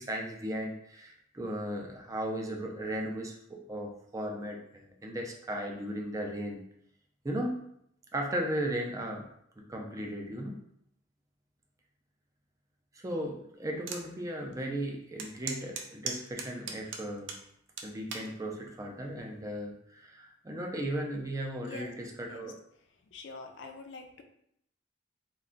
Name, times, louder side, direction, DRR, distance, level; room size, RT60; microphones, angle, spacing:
voice 1, 0.0-6.6 7.2-7.6 8.1-9.2 9.7-10.5 13.0-17.3 17.8-22.6, right 1 dB, 15° right, 1 dB, 0.4 m, -36 dB
sound 1, 13.9-14.0 14.5-14.6 15.2-17.4 17.8-18.3 19.0-19.3, right 5 dB, 75° right, 0.4 m, -37 dB
voice 2, 21.6-21.9 22.3-24.2, left 4 dB, 70° left, 5 dB, 0.4 m, -46 dB
2.4 x 2.3 x 3.7 m, 0.73 s
head